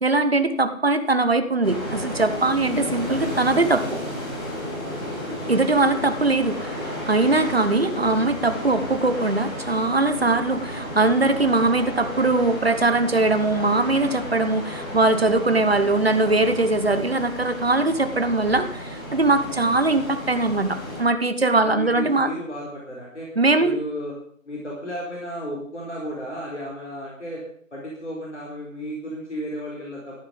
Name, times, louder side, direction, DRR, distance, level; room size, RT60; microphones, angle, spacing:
voice 1, 0.0-4.0 5.5-6.8 7.1-22.3 23.4-23.8, right 2 dB, 45° right, 10 dB, 1.2 m, -21 dB
sound 1, 1.6-21.0, left 1 dB, 15° left, 2.8 m, -33 dB
voice 2, 21.6-23.3 23.6-24.1 24.5-27.4 27.7-30.2, equal, 55° left, -4 dB, 4.5 m, -33 dB
14.5 x 11.0 x 5.3 m, 0.62 s
figure-of-eight pair, 160°, 42 cm